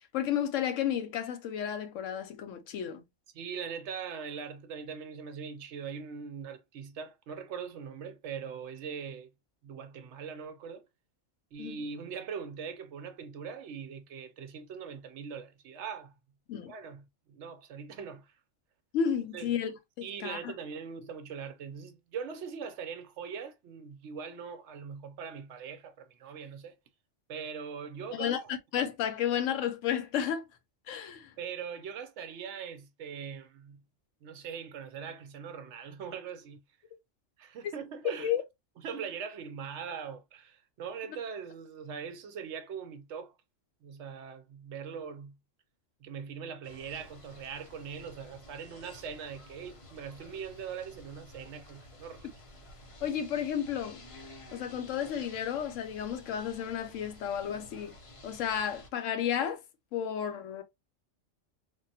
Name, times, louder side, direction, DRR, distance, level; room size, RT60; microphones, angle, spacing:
voice 1, 0.1-3.0 11.6-11.8 16.5-16.7 18.9-19.7 20.2-20.5 28.1-30.4 30.9-31.3 37.6-37.7 38.2-38.4 53.0-54.0 54.5-57.9 58.2-59.6 59.9-60.6, left 9 dB, 75° left, 0.9 m, -32 dB
voice 2, 3.3-9.3 9.6-10.9 11.5-16.1 16.7-17.0 17.3-18.4 19.3-19.5 20.0-26.8 27.3-28.3 31.4-33.8 34.2-36.6 37.4-38.3 38.8-43.3 43.8-45.3 46.0-52.3, right 6 dB, 70° right, 0.8 m, -41 dB
sound 1, 46.6-58.9, left 1 dB, 35° left, 0.5 m, -52 dB
3.5 x 2.1 x 2.7 m
omnidirectional pair, 1.3 m